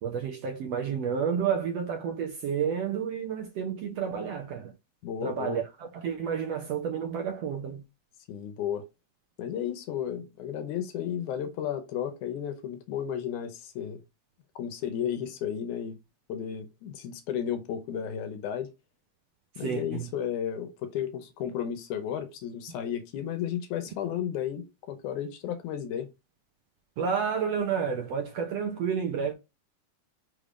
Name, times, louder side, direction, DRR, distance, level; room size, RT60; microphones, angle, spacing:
voice 1, 0.0-4.7 5.2-5.6 6.0-7.8 19.6-20.1 27.0-29.3, right 7 dB, 65° right, 1.7 m, -30 dB
voice 2, 5.0-5.6 8.3-8.8 9.4-14.0 14.6-16.0 16.3-18.7 19.6-26.1, left 9 dB, 75° left, 2.1 m, -33 dB
5.7 x 3.3 x 5.0 m
omnidirectional pair, 3.8 m